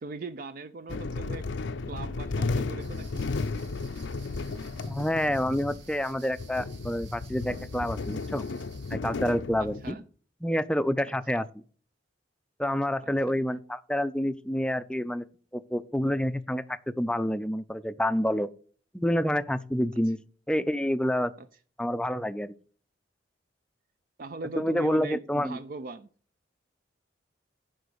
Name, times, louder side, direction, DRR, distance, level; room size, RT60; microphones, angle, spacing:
voice 1, 0.0-1.5 1.9-3.3 9.6-10.0 13.0-13.1 20.0-20.1 21.4-21.5 24.2-26.1, right 3 dB, 50° right, 0.5 m, -40 dB
sound 1, 0.9-9.9, left 3 dB, 80° left, 0.6 m, -34 dB
sound 2, 2.8-9.0, right 6 dB, 75° right, 1.8 m, -55 dB
voice 2, 4.9-8.4 8.9-10.0 10.4-11.4 12.6-15.2 15.5-18.5 18.9-20.2 20.5-21.3 21.8-22.5 24.6-25.6, equal, 5° left, 0.4 m, -28 dB
10.5 x 3.9 x 6.4 m
head